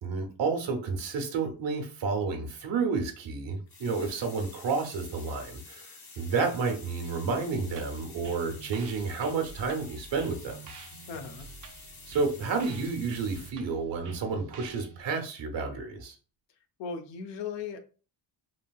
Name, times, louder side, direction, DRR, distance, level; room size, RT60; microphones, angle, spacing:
voice 1, 0.0-5.9 6.2-10.6 12.1-16.1, right 4 dB, 85° right, 0.9 m, -30 dB
sound 1, 3.7-13.5, left 4 dB, 40° left, 0.7 m, -50 dB
sound 2, 7.0-15.0, right 4 dB, 45° right, 0.5 m, -48 dB
voice 2, 11.1-11.5 16.8-17.8, left 6 dB, 75° left, 0.6 m, -37 dB
3.2 x 2.6 x 2.3 m
wide cardioid pair, 140°, 44 cm